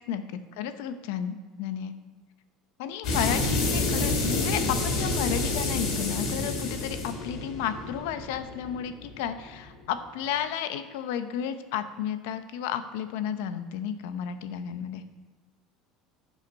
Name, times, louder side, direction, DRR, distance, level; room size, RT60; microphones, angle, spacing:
voice 1, 0.1-1.9 2.8-15.0, left 9 dB, 80° left, 10 dB, 0.7 m, -32 dB
sound 1, 3.0-9.5, left 3 dB, 50° left, 2.6 m, -29 dB
15.0 x 5.7 x 4.1 m, 1.4 s
cardioid pair, 160°, 0 cm